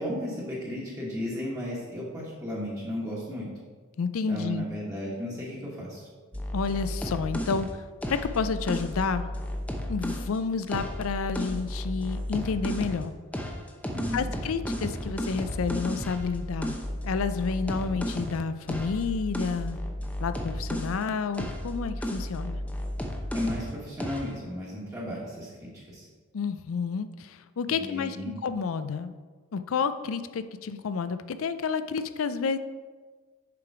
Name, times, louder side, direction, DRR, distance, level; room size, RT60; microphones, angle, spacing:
voice 1, 0.0-3.5 4.3-6.1 13.9-14.2 23.3-26.1 27.7-28.3, left 1 dB, 15° right, -7 dB, 1.5 m, -34 dB
voice 2, 4.0-4.7 6.5-7.8 8.1-9.3 9.9-13.1 14.1-16.8 17.0-19.8 20.2-22.6 26.3-29.1 29.5-32.6, left 5 dB, 70° left, 12 dB, 0.4 m, -30 dB
sound 1, 6.3-10.3 10.7-13.0 13.3-21.0 21.3-23.7 24.0-24.3, equal, 5° left, 0.6 m, -33 dB
6.9 x 4.9 x 4.8 m, 1.4 s
head